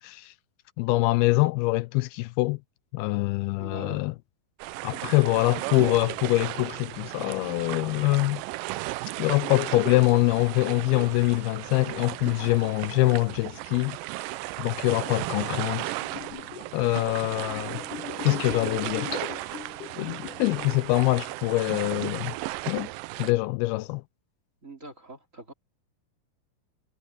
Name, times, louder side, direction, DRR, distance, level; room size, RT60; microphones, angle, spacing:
voice 1, 0.0-0.3 0.8-2.6 2.9-4.1 4.8-8.4 9.2-14.0 14.6-16.0 16.7-17.8 18.2-19.1 20.0-22.3 22.7-22.9 23.2-24.0, left 21 dB, 85° left, 2.4 m, -24 dB
voice 2, 3.6-4.1 24.6-25.5, right 2 dB, 20° right, 3.5 m, -43 dB
sound 1, 4.6-23.3, right 19 dB, 85° right, 2.0 m, -35 dB
sound 2, 12.0-12.1 14.6-14.7 16.0-16.8 17.5-20.8 21.2-21.7 22.3-22.8, left 11 dB, 70° left, 2.3 m, -40 dB
omnidirectional pair, 4.5 m